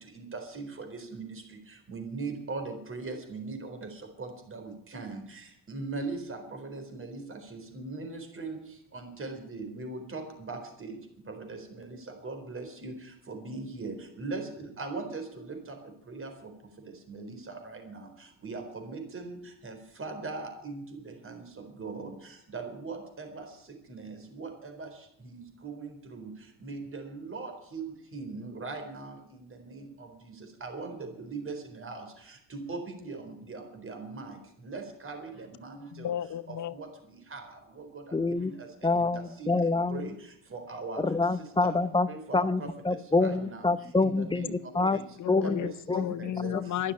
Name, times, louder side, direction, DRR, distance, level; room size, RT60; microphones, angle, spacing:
voice 1, 0.5-1.4 1.9-3.8 4.2-5.2 5.7-7.2 7.5-8.6 8.9-10.9 11.4-11.8 12.2-12.9 13.3-14.4 14.8-15.6 16.1-16.3 17.1-17.4 17.6-17.9 18.4-19.4 19.6-20.8 21.2-21.4 21.8-22.1 22.5-23.4 23.9-24.5 24.8-24.9 25.3-25.8 26.1-26.3 26.6-27.9 28.1-29.1 30.6-32.0 32.5-34.3 34.6-35.3 35.6-36.1 36.7-36.9 37.3-37.4 38.4-38.5 39.0-39.1 39.4-39.5 39.9-40.1 40.5-41.0 41.6-41.7 42.1-42.5 43.2-43.6 44.0-44.5 44.9-45.0 45.4-45.7 46.1-46.5 46.8-46.9, right 3 dB, 35° right, 5 dB, 4.2 m, -39 dB
voice 2, 35.9-36.7 44.7-46.9, left 11 dB, 50° left, 15 dB, 0.8 m, -34 dB
voice 3, 38.1-38.5 38.8-40.1 41.0-42.1 42.3-45.0 45.3-45.6 45.9-46.1, left 3 dB, 15° left, 14 dB, 0.9 m, -26 dB
11.5 x 11.5 x 8.8 m, 0.69 s
supercardioid pair, 85°, 38 cm